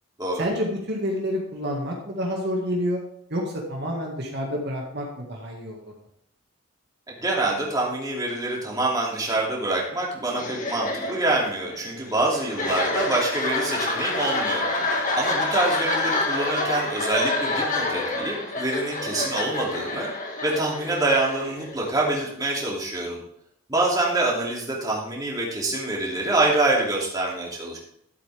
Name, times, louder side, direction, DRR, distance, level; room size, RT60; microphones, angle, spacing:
voice 1, 0.4-3.0 3.3-5.9, equal, 50° right, -1 dB, 2.0 m, -28 dB
voice 2, 7.1-14.7 15.2-20.1 20.4-23.2 23.7-27.8, right 2 dB, 20° right, -4 dB, 2.8 m, -25 dB
sound 1, 10.3-22.0, left 2 dB, 35° left, 1.9 m, -28 dB
12.5 x 8.3 x 3.5 m, 0.73 s
head